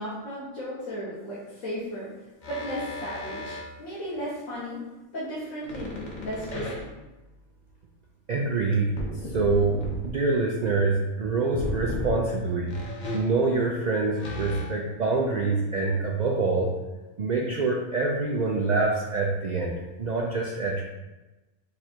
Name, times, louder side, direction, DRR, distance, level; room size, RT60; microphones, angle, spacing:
voice 1, 0.0-2.1 2.5-4.8 5.1-6.9, equal, 70° left, -9 dB, 1.5 m, -35 dB
sound 1, 2.4-3.7 5.6-7.2 8.8-10.1 11.5-12.1 12.7-15.0, left 1 dB, 40° left, 0.9 m, -35 dB
voice 2, 8.3-16.7 17.2-20.8, right 3 dB, 90° right, -1 dB, 0.3 m, -26 dB
4.7 x 2.5 x 4.3 m, 1.1 s
omnidirectional pair, 1.4 m